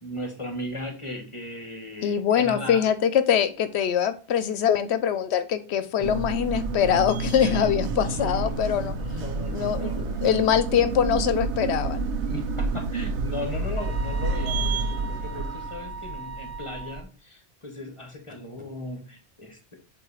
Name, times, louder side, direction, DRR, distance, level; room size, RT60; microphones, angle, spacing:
voice 1, 0.0-2.8 7.4-7.6 8.0-10.3 12.2-19.7, left 1 dB, 30° left, 4 dB, 1.1 m, -37 dB
voice 2, 2.0-8.9 9.5-12.0, left 9 dB, 75° left, 12 dB, 0.8 m, -23 dB
sound 1, 6.0-17.0, right 3 dB, 85° right, 0.9 m, -29 dB
sound 2, 13.8-17.0, right 4 dB, 15° right, 1.4 m, -39 dB
7.7 x 2.7 x 4.8 m, 0.39 s
omnidirectional pair, 1.1 m